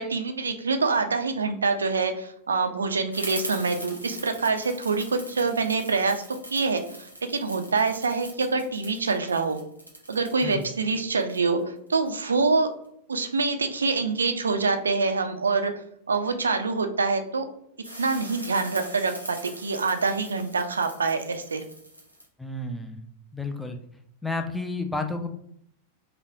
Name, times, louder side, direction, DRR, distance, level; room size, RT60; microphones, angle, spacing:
voice 1, 0.0-6.2 6.5-9.6 10.1-12.7 13.1-15.7 16.1-17.5 18.0-21.6, right 4 dB, 75° right, 7 dB, 0.3 m, -25 dB
sound 1, 3.1-12.1 17.8-22.3, equal, 90° left, 0.6 m, -42 dB
voice 2, 22.4-23.0 23.3-23.8 24.2-25.3, left 3 dB, 5° left, 4 dB, 0.4 m, -31 dB
3.3 x 2.1 x 2.5 m, 0.70 s
figure-of-eight pair, 90°, 0 cm